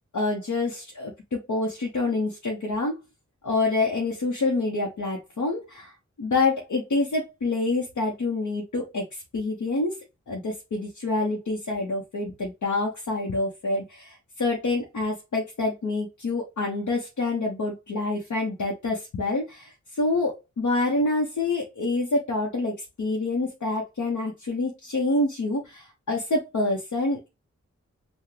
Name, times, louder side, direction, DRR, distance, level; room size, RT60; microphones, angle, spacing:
voice 1, 0.1-3.0 3.4-5.9 6.2-10.0 10.3-27.3, left 2 dB, 80° left, -2 dB, 1.0 m, -27 dB
5.8 x 2.3 x 3.2 m, 0.24 s
wide cardioid pair, 80°, 29 cm